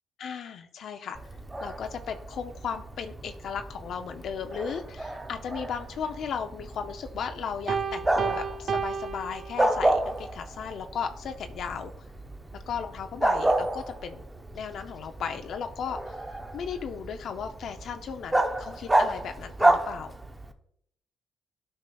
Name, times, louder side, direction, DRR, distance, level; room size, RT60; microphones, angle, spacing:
voice 1, 0.2-1.2 1.6-11.9 12.5-14.2 14.5-20.1, left 7 dB, 65° left, 6 dB, 0.5 m, -36 dB
Bark, 1.1-20.5, right 1 dB, 15° right, 0.7 m, -31 dB
Piano, 7.7-10.1, right 6 dB, 50° right, 0.4 m, -32 dB
11.5 x 5.4 x 2.3 m, 0.73 s
cardioid pair, 90°, 0 cm